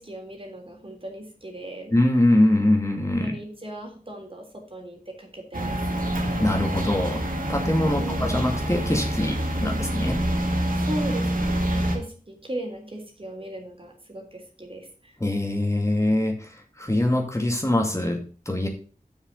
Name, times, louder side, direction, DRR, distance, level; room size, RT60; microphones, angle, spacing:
voice 1, 0.0-2.0 3.2-5.8 7.9-8.4 10.8-15.1, right 1 dB, 40° right, 1 dB, 3.5 m, -37 dB
voice 2, 1.9-3.4 6.4-7.2 7.5-10.2 15.2-18.7, left 1 dB, 20° left, 1 dB, 2.3 m, -23 dB
sound 1, 5.5-12.0, right 1 dB, 85° right, 2.2 m, -26 dB
7.3 x 6.6 x 6.7 m, 0.39 s
wide cardioid pair, 50°, 14 cm